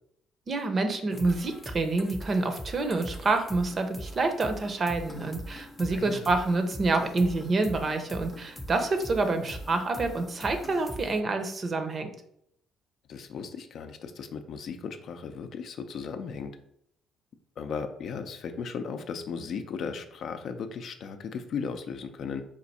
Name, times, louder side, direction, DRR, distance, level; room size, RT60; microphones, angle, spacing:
voice 1, 0.5-12.1, right 3 dB, 40° right, 7 dB, 0.6 m, -27 dB
sound 1, 1.1-11.2, equal, 15° left, 0.6 m, -42 dB
voice 2, 5.9-6.3 9.3-9.4 13.1-16.6 17.6-22.4, left 6 dB, 60° left, 7 dB, 0.4 m, -36 dB
4.3 x 2.5 x 4.1 m, 0.72 s
cardioid pair, 95°, 0 cm